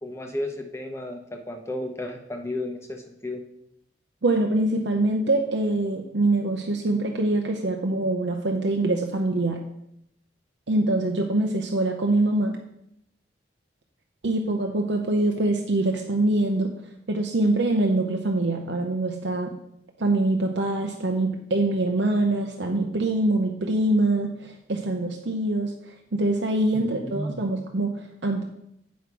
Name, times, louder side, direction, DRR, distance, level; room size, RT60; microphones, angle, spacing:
voice 1, 0.0-3.4 26.7-27.6, left 1 dB, 15° left, 4 dB, 0.8 m, -33 dB
voice 2, 4.2-9.6 10.7-12.6 14.2-16.7 17.1-19.6 20.0-28.5, right 2 dB, 80° right, 2 dB, 0.7 m, -24 dB
8.3 x 6.0 x 4.8 m, 0.80 s
head